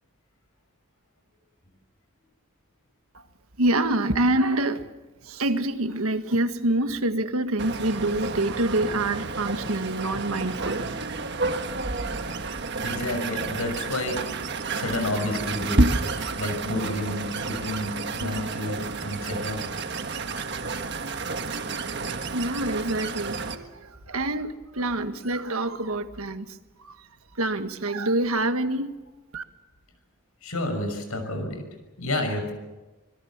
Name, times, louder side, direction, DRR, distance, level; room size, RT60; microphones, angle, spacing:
voice 1, 3.6-4.9 5.2-10.8 22.3-27.1 27.4-28.9 29.3-29.4, right 2 dB, 80° right, 1.6 m, -26 dB
sound 1, 7.6-23.6, right 3 dB, 50° right, 1.5 m, -30 dB
voice 2, 12.8-14.2 14.8-15.8 16.4-19.6 30.4-31.6 32.0-32.5, left 1 dB, 90° left, 6.0 m, -30 dB
25.5 x 22.0 x 7.4 m
head